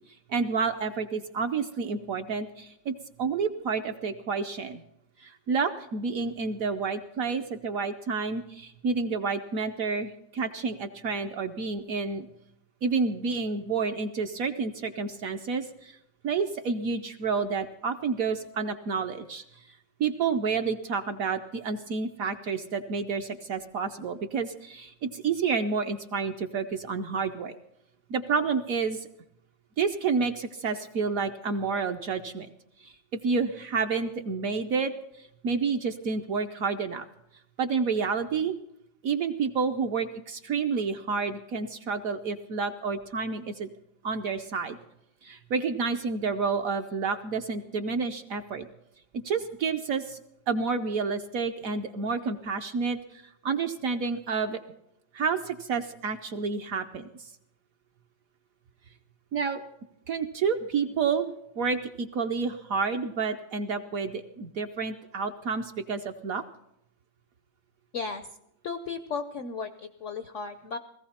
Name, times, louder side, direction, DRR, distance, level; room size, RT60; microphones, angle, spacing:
voice 1, 0.3-2.9 3.2-4.8 5.2-12.3 12.8-16.0 16.2-19.4 20.0-27.6 28.1-29.1 29.8-32.5 32.8-32.9 33.2-34.9 35.2-37.1 37.6-38.5 39.0-43.7 44.0-44.8 45.2-48.7 49.2-54.6 55.1-57.1 59.3-59.6 60.1-66.4, right 5 dB, 60° right, 6 dB, 1.0 m, -29 dB
voice 2, 68.6-70.8, left 5 dB, 65° left, 9 dB, 0.7 m, -35 dB
17.5 x 15.5 x 4.3 m, 0.80 s
omnidirectional pair, 2.0 m